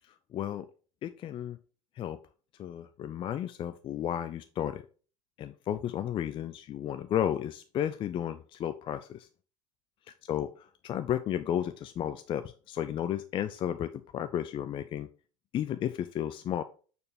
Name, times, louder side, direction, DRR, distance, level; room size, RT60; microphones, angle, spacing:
voice 1, 0.1-0.7 1.0-1.6 2.0-2.2 2.6-4.8 5.4-9.3 10.3-15.1 15.5-16.6, left 10 dB, 35° left, 10 dB, 0.4 m, -33 dB
6.8 x 3.4 x 4.2 m, 0.38 s
hypercardioid pair, 95°, 15 cm